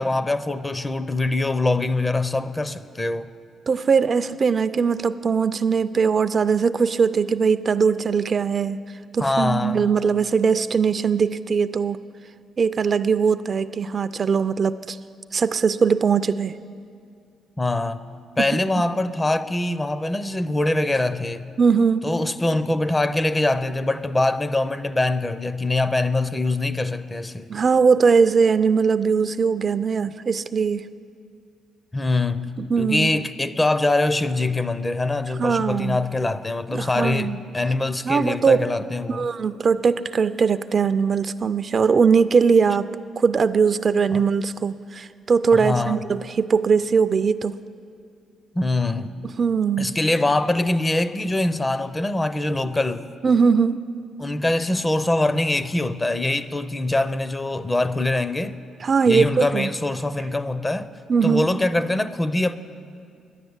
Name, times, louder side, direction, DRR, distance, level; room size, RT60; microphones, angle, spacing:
voice 1, 0.0-3.3 9.2-9.9 17.6-18.0 18.4-21.5 22.0-27.5 31.9-39.3 44.1-44.2 45.5-46.0 48.5-49.2 49.8-53.1 54.2-58.6 59.1-60.9 61.2-62.6, left 2 dB, 20° left, 0.5 m, -23 dB
voice 2, 3.7-8.8 9.1-12.0 12.6-15.0 15.3-16.5 18.4-18.6 21.6-22.1 27.5-30.8 32.6-33.1 35.4-36.0 36.7-37.4 38.1-38.6 39.1-42.9 43.2-47.5 49.2-49.9 53.2-53.9 58.8-59.7 61.1-61.5, right 5 dB, 45° right, 0.3 m, -20 dB
11.0 x 9.8 x 8.0 m
cardioid pair, 90°, 0 cm